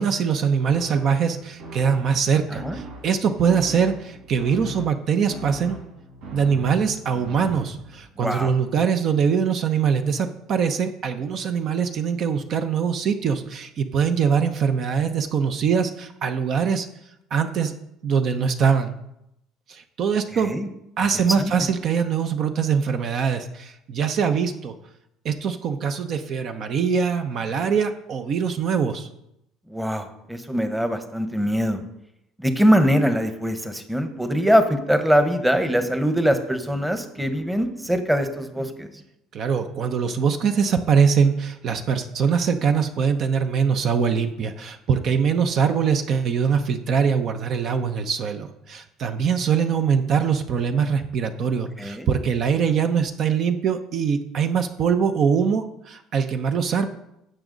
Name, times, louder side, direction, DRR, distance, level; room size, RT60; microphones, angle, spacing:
voice 1, 0.0-5.8 6.3-16.9 17.3-17.7 18.0-18.9 19.7-20.5 21.0-24.7 25.2-29.1 39.3-56.9, right 6 dB, 50° right, 7 dB, 0.8 m, -23 dB
sound 1, 0.7-8.1, right 1 dB, 80° right, 4.5 m, -41 dB
voice 2, 8.2-8.5 20.5-20.7 21.4-21.5 29.7-31.8 32.4-38.9 51.8-52.1, equal, 5° right, 8 dB, 1.0 m, -22 dB
15.5 x 6.2 x 4.0 m, 0.82 s
cardioid pair, 115°, 0 cm